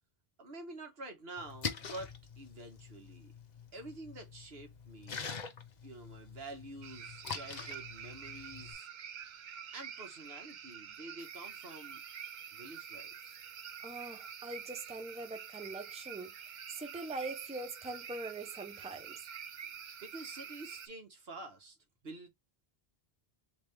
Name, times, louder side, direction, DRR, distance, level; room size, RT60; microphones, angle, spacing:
voice 1, 0.4-3.3 3.7-5.2 5.8-8.9 9.7-12.0 12.5-13.1 20.0-21.8 22.0-22.3, right 2 dB, 75° right, 1.5 m, -48 dB
Splash splatter, 1.4-8.7, left 6 dB, 50° left, 0.8 m, -45 dB
sound 1, 6.8-20.9, right 8 dB, 55° right, 0.6 m, -47 dB
voice 2, 13.8-16.3 16.8-19.2, right 3 dB, 10° right, 0.6 m, -42 dB
3.7 x 3.1 x 3.3 m
omnidirectional pair, 1.0 m